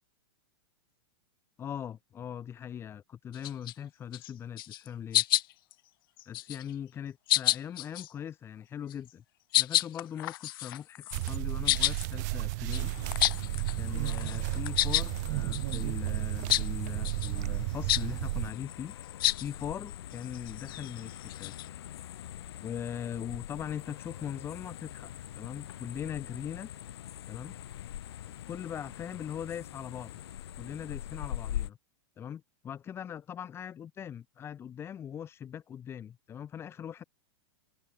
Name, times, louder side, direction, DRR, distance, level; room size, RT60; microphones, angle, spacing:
voice 1, 1.6-5.2 6.3-9.2 9.6-12.9 13.8-18.9 19.4-21.5 22.6-26.7 27.3-27.6 28.5-30.1 30.6-31.8 32.2-37.0, left 9 dB, 20° left, 2.4 m, -40 dB
sound 1, 3.3-3.7 4.1-4.3 4.6-4.9 5.1-5.7 6.2-6.7 7.3-8.1 8.9-9.1 9.5-13.8 14.1-15.1 15.5-15.8 16.5-16.7 17.0-17.3 17.9-18.1 19.2-19.5 20.1-21.7, left 16 dB, 60° left, 0.4 m, -29 dB
sound 2, 11.1-18.5, right 24 dB, 45° right, 0.5 m, -33 dB
sound 3, 12.7-31.7, left 11 dB, 80° left, 1.6 m, -43 dB
open air
supercardioid pair, 155°, 13 cm